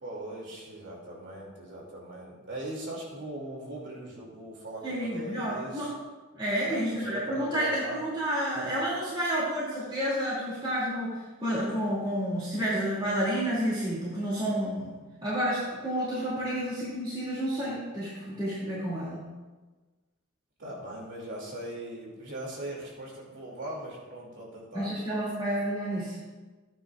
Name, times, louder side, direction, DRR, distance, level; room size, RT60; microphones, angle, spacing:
voice 1, 0.0-5.9 6.6-8.0 20.6-24.9, right 1 dB, 60° right, -2 dB, 2.8 m, -40 dB
voice 2, 4.8-5.9 6.3-14.9 15.2-19.2 24.7-26.1, equal, 25° right, -9 dB, 2.7 m, -30 dB
13.5 x 9.6 x 2.5 m, 1.3 s
head